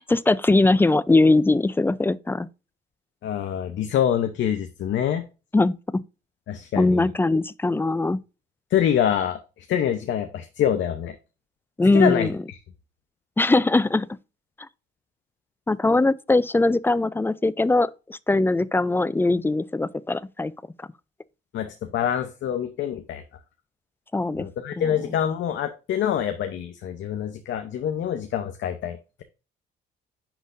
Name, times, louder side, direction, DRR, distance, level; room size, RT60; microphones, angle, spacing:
voice 1, 0.0-2.5 5.5-6.0 6.8-8.2 11.8-12.3 13.4-14.1 15.7-20.5 24.1-24.5 24.8-24.9, left 2 dB, 10° left, 0.4 m, -21 dB
voice 2, 3.2-5.2 6.5-7.1 8.7-9.4 9.7-11.2 11.9-12.6 21.5-23.2 24.4-29.2, left 9 dB, 70° left, 0.7 m, -25 dB
10.0 x 4.0 x 2.5 m
cardioid pair, 90°, 20 cm